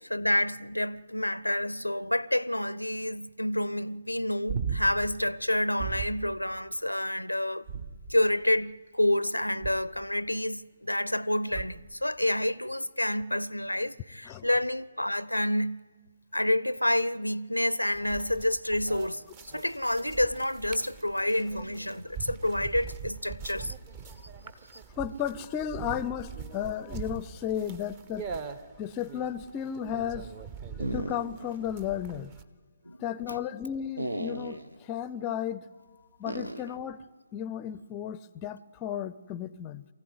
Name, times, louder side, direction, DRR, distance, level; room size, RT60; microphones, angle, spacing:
voice 1, 0.0-7.7 8.1-15.8 16.3-23.7 32.9-33.0 33.3-33.4, left 1 dB, 85° left, 0.6 m, -28 dB
sound 1, 4.5-5.1 5.8-6.3 7.6-8.4 9.6-10.1 11.5-12.0 14.3-14.4, right 6 dB, 45° right, 1.5 m, -35 dB
sound 2, 17.9-32.4, right 6 dB, 25° right, 1.1 m, -43 dB
voice 2, 25.0-28.3 28.8-30.3 30.9-32.3 33.0-35.7 36.2-37.0 37.3-39.9, left 9 dB, 20° left, 0.6 m, -34 dB
sound 3, 30.8-31.6 32.0-32.1 34.0-34.8 36.3-36.8, right 1 dB, 75° right, 1.3 m, -35 dB
23.5 x 15.0 x 9.5 m
figure-of-eight pair, 140°, 0 cm